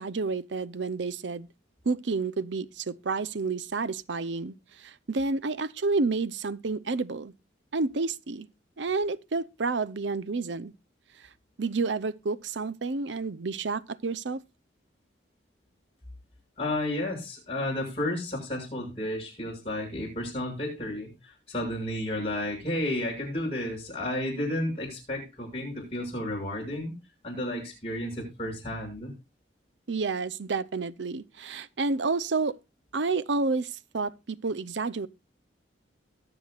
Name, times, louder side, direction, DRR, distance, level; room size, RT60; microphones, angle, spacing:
voice 1, 0.0-1.5 1.8-7.3 7.7-8.5 8.8-10.7 11.6-14.4 29.9-32.6 32.9-35.1, right 3 dB, 80° right, 0.7 m, -30 dB
voice 2, 16.6-26.9 27.2-29.1, left 1 dB, 30° left, 6.9 m, -32 dB
22.5 x 7.9 x 2.4 m
head